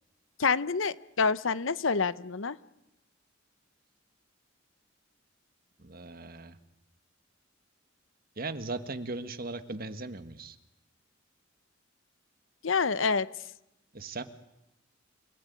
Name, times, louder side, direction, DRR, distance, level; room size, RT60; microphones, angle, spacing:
voice 1, 0.4-2.6 12.6-13.3, left 5 dB, 85° left, 17 dB, 0.9 m, -27 dB
voice 2, 5.8-6.6 8.4-10.6 13.9-14.2, right 3 dB, 50° right, 10 dB, 1.7 m, -38 dB
28.5 x 18.5 x 9.4 m, 0.88 s
head